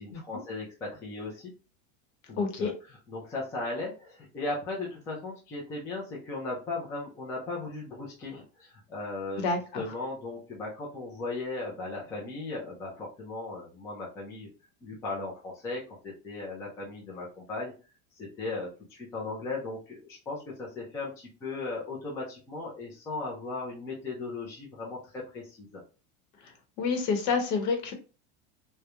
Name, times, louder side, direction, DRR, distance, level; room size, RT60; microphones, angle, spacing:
voice 1, 0.0-1.5 2.3-14.5 14.8-17.7 18.2-25.8, left 3 dB, 10° left, -3 dB, 0.3 m, -37 dB
voice 2, 2.4-2.7 9.4-9.8 26.8-27.9, left 4 dB, 70° left, 5 dB, 0.9 m, -28 dB
2.3 x 2.1 x 2.8 m, 0.33 s
supercardioid pair, 170°, 34 cm